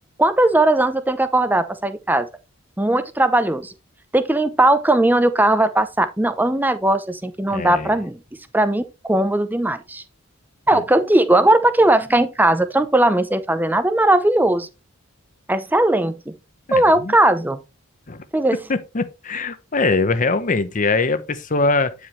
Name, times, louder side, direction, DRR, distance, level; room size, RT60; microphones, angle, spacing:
voice 1, 0.2-2.3 2.8-3.7 4.1-8.2 8.5-10.0 10.7-14.7 15.5-16.3 16.7-17.6 18.3-18.6, right 1 dB, 10° right, 0.6 m, -18 dB
voice 2, 7.5-7.9 10.7-10.8 16.7-17.1 18.1-18.2 18.7-22.1, left 3 dB, 40° left, 0.8 m, -22 dB
9.2 x 5.0 x 3.2 m
head